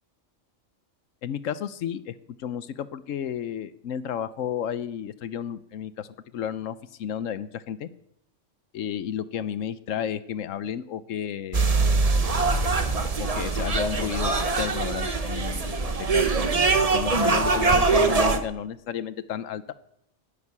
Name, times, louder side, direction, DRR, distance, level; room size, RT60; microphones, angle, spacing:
voice 1, 1.2-2.1 2.4-6.1 6.3-7.9 8.7-11.7 13.2-14.3 14.6-16.3 16.9-19.6, left 9 dB, 85° left, 15 dB, 1.1 m, -32 dB
sound 1, 11.5-18.4, right 3 dB, 30° right, 1.1 m, -23 dB
11.0 x 10.0 x 9.7 m, 0.78 s
omnidirectional pair, 1.3 m